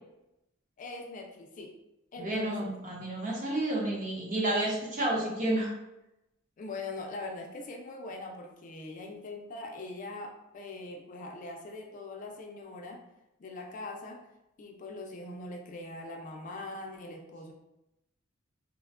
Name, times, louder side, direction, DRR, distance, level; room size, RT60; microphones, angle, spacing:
voice 1, 0.8-1.8 2.1-2.7 6.6-13.0 13.4-14.2 14.6-17.5, left 2 dB, 40° left, 1 dB, 0.3 m, -42 dB
voice 2, 2.2-5.7, right 1 dB, 40° right, -3 dB, 0.8 m, -30 dB
3.4 x 2.1 x 2.4 m, 0.91 s
head